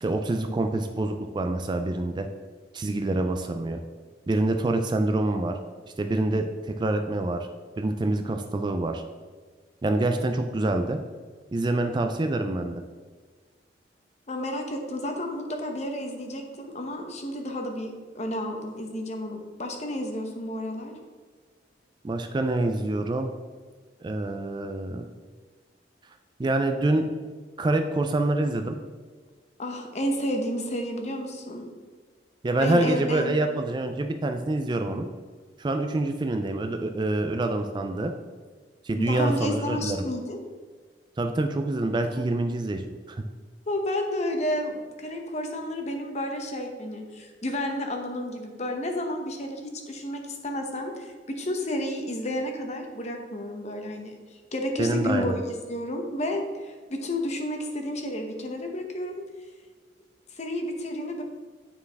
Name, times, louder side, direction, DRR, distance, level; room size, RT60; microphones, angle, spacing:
voice 1, 0.0-2.3 2.7-3.8 4.3-5.6 6.0-7.5 7.8-9.0 9.8-11.0 11.5-12.8 22.0-23.3 24.0-25.0 26.4-27.1 27.6-28.8 32.4-35.1 35.6-38.1 38.8-40.0 41.2-42.8 43.1-43.2 54.8-55.4, right 2 dB, 25° right, 6 dB, 0.3 m, -26 dB
voice 2, 14.3-20.9 29.6-31.7 32.6-33.4 39.0-40.4 42.2-42.3 43.7-54.2 54.5-59.2 60.3-61.2, left 1 dB, 40° left, 4 dB, 0.9 m, -31 dB
9.0 x 4.6 x 3.4 m, 1.5 s
head